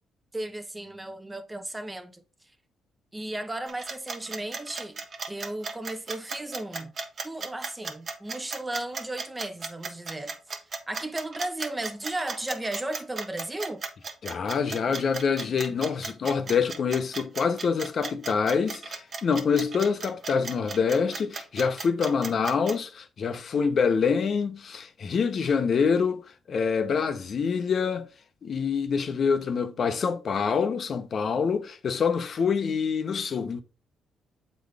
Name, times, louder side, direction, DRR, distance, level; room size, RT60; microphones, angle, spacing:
voice 1, 0.3-2.2 3.1-5.0 5.3-6.9 7.2-10.3 10.9-13.8, right 1 dB, 15° right, 0.8 m, -35 dB
sound 1, 3.7-22.8, right 4 dB, 45° right, 1.1 m, -36 dB
voice 2, 14.2-26.2 26.5-28.1 28.4-33.6, left 6 dB, 50° left, 0.8 m, -26 dB
7.6 x 4.1 x 3.4 m
cardioid pair, 90°, 0 cm